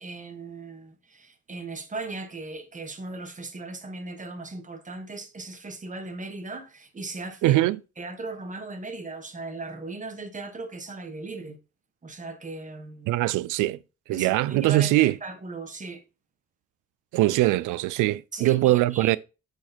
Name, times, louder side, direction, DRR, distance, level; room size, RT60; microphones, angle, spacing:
voice 1, 0.0-7.6 8.0-11.6 12.0-13.1 14.1-16.0 18.3-19.2, right 3 dB, 25° right, 1.5 m, -37 dB
voice 2, 7.4-7.8 13.1-13.8 14.1-15.1 17.1-19.2, right 16 dB, 90° right, 0.5 m, -22 dB
7.4 x 4.9 x 4.3 m
cardioid pair, 90°, 30 cm